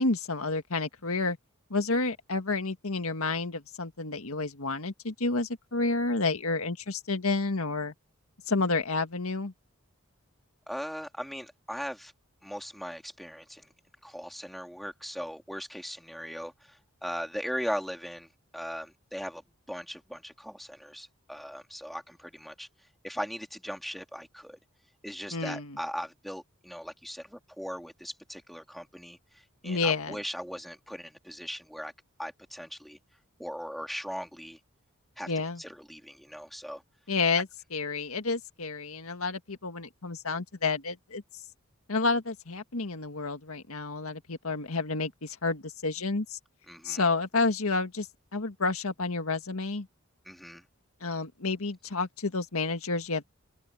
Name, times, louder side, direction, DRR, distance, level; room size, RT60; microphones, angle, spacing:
voice 1, 0.0-1.4 1.7-7.9 8.5-9.5 25.3-25.8 29.6-30.2 35.3-35.6 37.1-41.2 41.9-46.4 46.8-48.1 48.3-49.9 51.0-53.2, left 3 dB, 80° left, 1.8 m, -30 dB
voice 2, 10.7-12.1 12.4-13.7 14.0-19.4 19.7-22.7 23.0-24.6 25.0-31.9 32.2-33.0 33.4-34.6 35.2-35.3 35.6-36.8 46.7-47.1 50.2-50.6, equal, ahead, 3.0 m, -39 dB
open air
head